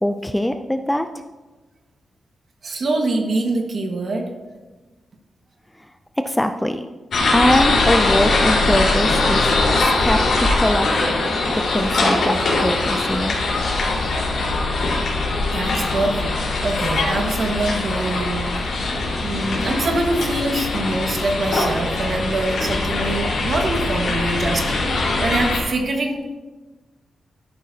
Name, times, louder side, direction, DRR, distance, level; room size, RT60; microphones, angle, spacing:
voice 1, 0.0-1.1 6.2-6.9 7.3-9.5 9.8-11.0 11.5-13.4, left 1 dB, 5° left, 7 dB, 0.3 m, -22 dB
voice 2, 2.6-4.2 14.4-14.5 15.5-18.5 18.9-26.2, right 2 dB, 45° right, 2 dB, 1.5 m, -24 dB
sound 1, 7.1-25.6, left 2 dB, 65° left, 4.1 m, -21 dB
sound 2, 11.8-14.3, left 2 dB, 40° left, 2.1 m, -33 dB
13.0 x 11.5 x 2.8 m, 1.2 s
wide cardioid pair, 180°, 0 cm